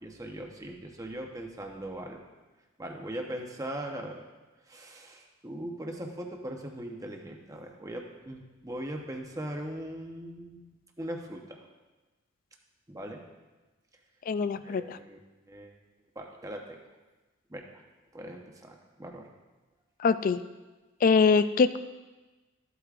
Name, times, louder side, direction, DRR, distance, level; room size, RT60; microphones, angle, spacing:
voice 1, 0.0-2.2 2.8-4.2 4.7-11.6 12.9-13.2 14.5-15.2 15.5-15.8 16.1-16.8 17.5-17.8 18.1-19.3, right 1 dB, 15° right, 2 dB, 0.9 m, -40 dB
voice 2, 14.3-15.0 20.0-20.4 21.0-21.8, left 5 dB, 45° left, 13 dB, 0.3 m, -23 dB
13.5 x 8.1 x 2.5 m, 1.2 s
head